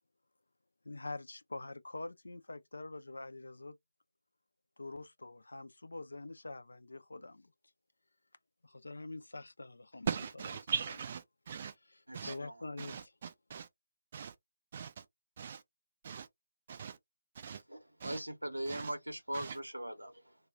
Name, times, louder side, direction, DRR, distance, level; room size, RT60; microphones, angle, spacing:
voice 1, 0.8-3.8 4.8-7.5 8.6-10.1 11.9-13.1, left 2 dB, 65° left, 0.4 m, -45 dB
voice 2, 10.1-11.7 12.1-12.4 12.8-13.7 14.1-14.3 14.7-15.0 15.4-15.6 16.0-16.3 16.7-17.0 17.4-17.6 18.0-18.2 18.7-18.9 19.3-19.6, right 7 dB, 30° right, 0.4 m, -40 dB
voice 3, 12.1-12.6 17.7-20.4, right 1 dB, 80° right, 0.8 m, -40 dB
2.3 x 2.1 x 3.3 m
figure-of-eight pair, 150°, 0 cm